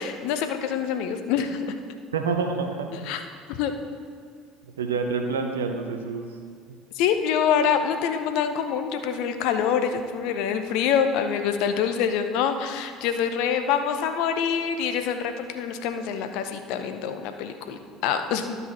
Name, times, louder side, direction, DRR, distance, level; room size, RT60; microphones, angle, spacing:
voice 1, 0.0-1.6 3.1-3.2 3.5-3.7 6.9-18.6, left 7 dB, 60° left, 7 dB, 0.7 m, -25 dB
voice 2, 2.1-3.1 4.6-6.4 6.7-6.8, right 4 dB, 80° right, 5 dB, 0.8 m, -28 dB
12.5 x 5.5 x 4.2 m, 2.2 s
figure-of-eight pair, 65°, 0 cm